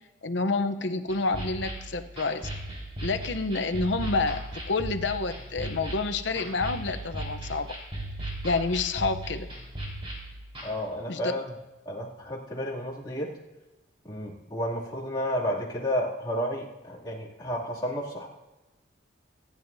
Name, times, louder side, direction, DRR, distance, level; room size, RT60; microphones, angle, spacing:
voice 1, 0.2-2.5 3.0-7.8 8.4-9.5 11.1-11.3, left 3 dB, 65° left, 9 dB, 0.8 m, -28 dB
sound 1, 1.1-10.7, right 1 dB, 30° right, 4.3 m, -37 dB
voice 2, 10.6-11.4 11.8-13.3 14.0-18.3, equal, 25° left, -6 dB, 2.6 m, -31 dB
26.0 x 9.7 x 2.7 m, 1.1 s
head